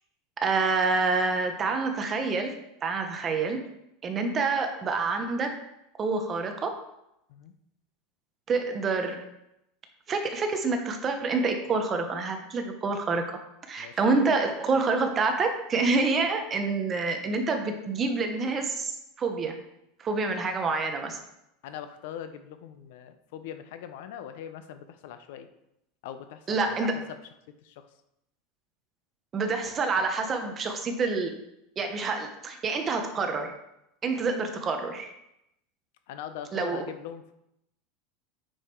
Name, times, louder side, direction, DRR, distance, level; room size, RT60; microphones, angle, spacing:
voice 1, 0.4-2.5 2.8-3.6 4.0-5.5 6.0-6.7 8.5-9.2 10.1-13.4 13.7-19.6 20.0-21.2 26.5-27.0 29.3-31.3 31.8-33.5 34.0-35.1 36.5-36.9, right 4 dB, 20° right, 5 dB, 0.8 m, -27 dB
voice 2, 13.8-14.4 21.6-25.5 26.0-27.2 27.5-27.9 36.1-37.3, left 9 dB, 60° left, 10 dB, 0.6 m, -41 dB
8.5 x 5.1 x 4.5 m, 0.83 s
supercardioid pair, 175°, 0 cm